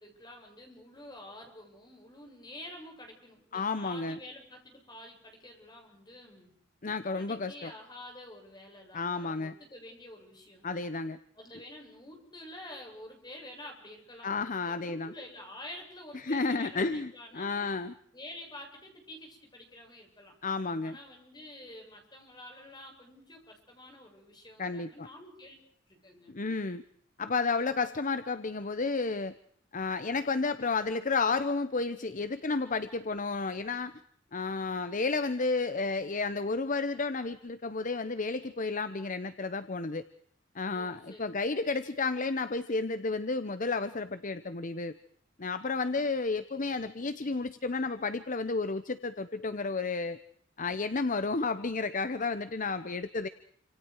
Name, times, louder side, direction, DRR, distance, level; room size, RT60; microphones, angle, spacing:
voice 1, 0.0-6.5 7.2-10.9 11.4-14.3 14.6-17.5 18.1-20.4 20.8-25.5 25.9-26.4 40.7-41.7, left 1 dB, 20° left, 1 dB, 7.6 m, -49 dB
voice 2, 3.5-4.2 6.8-7.7 8.9-9.6 10.6-11.2 14.2-15.1 16.1-17.9 20.4-21.0 24.6-25.1 26.3-26.8 27.2-29.3 29.7-33.9 34.3-40.0 40.5-44.9 45.4-50.2 50.6-53.3, left 3 dB, 45° left, 12 dB, 1.0 m, -32 dB
29.0 x 26.5 x 4.8 m, 0.63 s
head